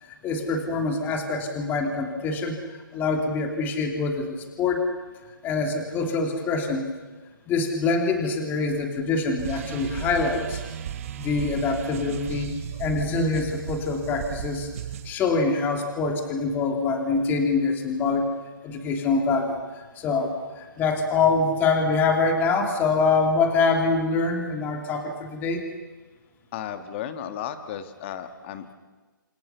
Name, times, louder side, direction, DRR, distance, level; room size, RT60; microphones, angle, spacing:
voice 1, 0.0-4.9 5.4-6.9 7.5-10.6 11.2-12.5 12.8-14.7 15.0-18.3 18.6-25.7, left 4 dB, 15° left, 4 dB, 2.9 m, -25 dB
sound 1, 9.4-15.1, right 10 dB, 40° right, 1.5 m, -35 dB
voice 2, 26.5-28.7, left 9 dB, 30° left, 9 dB, 2.0 m, -34 dB
28.0 x 27.5 x 7.0 m, 1.3 s
hypercardioid pair, 155°, 12 cm